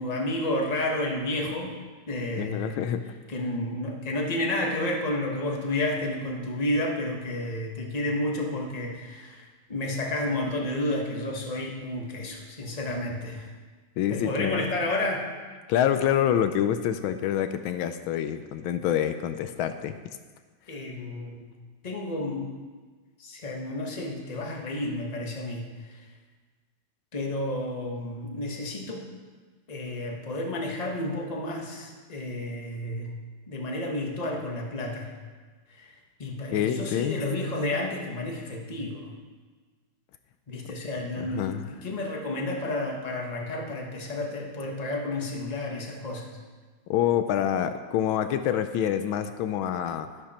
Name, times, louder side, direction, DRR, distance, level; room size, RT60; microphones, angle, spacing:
voice 1, 0.0-1.8 2.1-2.7 3.3-9.4 9.7-13.5 14.1-15.2 20.7-21.5 21.8-22.5 23.2-26.0 27.1-29.0 29.7-33.1 33.5-35.1 35.7-35.9 36.2-39.1 40.5-41.5 41.8-46.3, left 1 dB, 20° left, 0 dB, 1.3 m, -31 dB
voice 2, 2.4-3.0 14.0-14.6 15.7-20.0 36.5-37.2 41.2-41.6 46.9-50.1, left 10 dB, 80° left, 9 dB, 1.4 m, -26 dB
11.5 x 11.0 x 4.3 m, 1.4 s
omnidirectional pair, 2.2 m